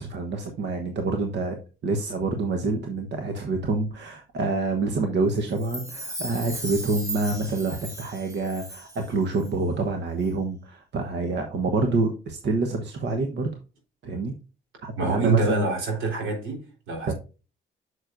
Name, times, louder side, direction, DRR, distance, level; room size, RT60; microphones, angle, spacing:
voice 1, 0.0-1.6 1.8-13.5 14.0-14.3 14.8-15.7 17.0-17.1, right 3 dB, 60° right, 1.1 m, -27 dB
Chime, 5.5-9.1 9.4-9.5, right 1 dB, 15° right, 1.7 m, -37 dB
voice 2, 14.9-17.1, right 3 dB, 80° right, 3.9 m, -26 dB
8.9 x 6.5 x 2.6 m
cardioid pair, 90°, 20 cm